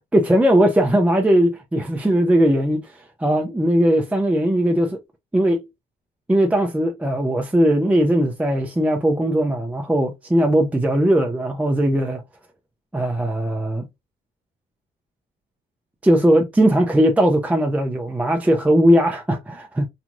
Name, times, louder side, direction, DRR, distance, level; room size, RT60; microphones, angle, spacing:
voice 1, 0.1-5.0 5.3-5.6 6.3-12.2 12.9-13.8 16.0-19.9, right 1 dB, 5° right, 0.5 m, -19 dB
3.0 x 2.4 x 2.4 m
cardioid pair, 90°, 20 cm